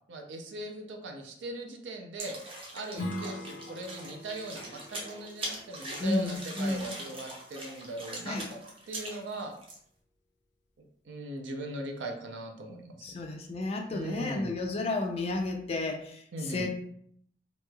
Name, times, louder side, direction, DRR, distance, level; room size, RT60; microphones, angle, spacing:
voice 1, 0.1-2.4 2.7-8.4 8.9-9.5 10.8-13.0 13.9-14.5 16.3-16.7, right 1 dB, 75° right, 3 dB, 0.5 m, -39 dB
sound 1, 2.2-9.8, right 1 dB, 30° right, 0.6 m, -42 dB
Strum, 2.9-8.1, left 1 dB, 70° left, 0.6 m, -43 dB
voice 2, 6.0-6.9 8.2-8.5 13.0-16.7, left 2 dB, 35° left, 3 dB, 0.3 m, -32 dB
3.0 x 2.8 x 2.2 m, 0.66 s
head